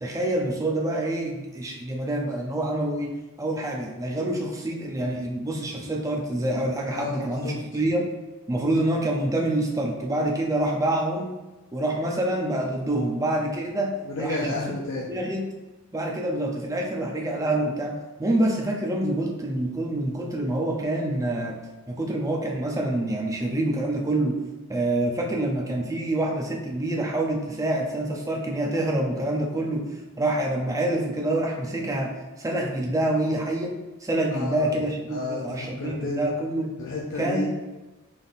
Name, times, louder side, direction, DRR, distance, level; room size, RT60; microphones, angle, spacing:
voice 1, 0.0-8.0 8.5-11.3 11.7-13.9 14.2-14.6 15.1-15.4 15.9-21.6 21.9-24.4 24.7-29.9 30.2-33.7 34.0-36.7 37.2-37.5, right 1 dB, 15° right, 0 dB, 0.5 m, -26 dB
voice 2, 6.9-7.6 14.1-15.1 34.3-34.7 35.1-36.3 36.8-37.5, left 2 dB, 60° left, -4 dB, 0.6 m, -31 dB
4.0 x 3.5 x 2.6 m, 1.1 s
head